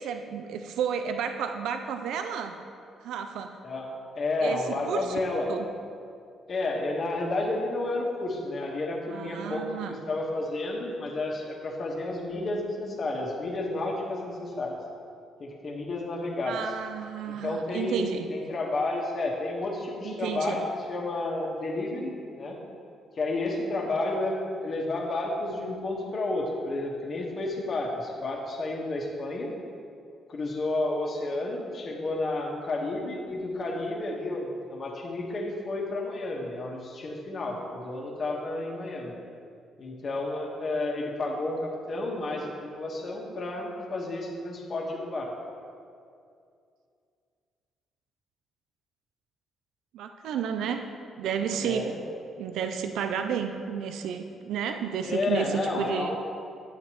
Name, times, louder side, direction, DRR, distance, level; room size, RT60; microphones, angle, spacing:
voice 1, 0.0-2.6 3.0-3.6 4.4-5.2 5.5-5.7 9.1-10.0 16.5-18.3 20.0-20.6 49.9-50.9 51.2-51.9 52.4-56.2, right 7 dB, 85° right, 7 dB, 0.4 m, -32 dB
voice 2, 4.1-5.5 6.5-14.7 15.4-16.6 17.2-20.6 20.9-22.1 22.4-22.6 23.2-24.4 24.6-29.5 30.3-39.1 39.8-45.3 51.6-52.0 55.0-56.2, left 2 dB, 50° left, -1 dB, 1.4 m, -31 dB
8.8 x 8.2 x 3.0 m, 2.4 s
cardioid pair, 90°, 0 cm